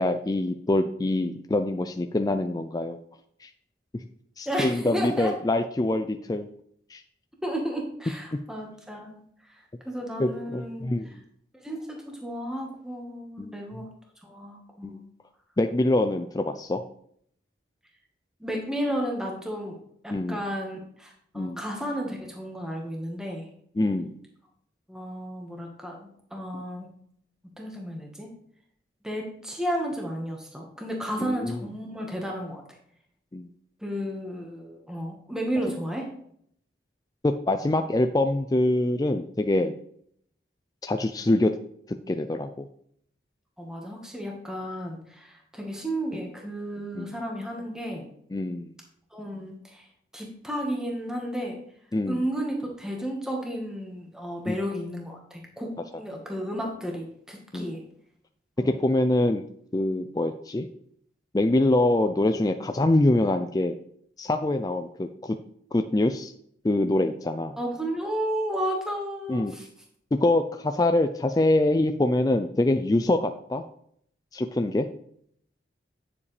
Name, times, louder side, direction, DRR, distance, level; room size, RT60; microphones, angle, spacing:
voice 1, 0.0-3.0 3.4-3.5 4.4-6.5 6.9-7.0 8.3-8.4 10.2-11.1 13.4-13.5 14.8-15.0 15.6-16.8 20.1-20.4 21.3-21.6 23.8-24.1 31.2-31.6 33.3-33.5 37.2-39.7 40.8-41.5 41.9-42.7 47.0-47.1 48.3-48.8 51.9-52.2 54.5-54.6 57.5-57.7 58.6-59.4 59.7-60.7 61.3-63.7 64.2-65.4 65.7-66.3 66.6-67.5 69.3-69.6 70.1-73.6 74.3-74.9, left 2 dB, 20° left, 7 dB, 0.4 m, -24 dB
voice 2, 4.4-5.3 7.4-11.2 11.6-13.9 14.2-15.0 18.4-19.8 20.0-23.5 24.9-26.9 27.6-28.3 29.0-32.6 33.8-36.1 43.6-48.0 49.1-49.9 50.1-51.6 52.1-57.8 58.6-58.8 67.6-69.7, equal, 5° right, 0 dB, 1.4 m, -33 dB
9.6 x 7.2 x 3.3 m, 0.66 s
head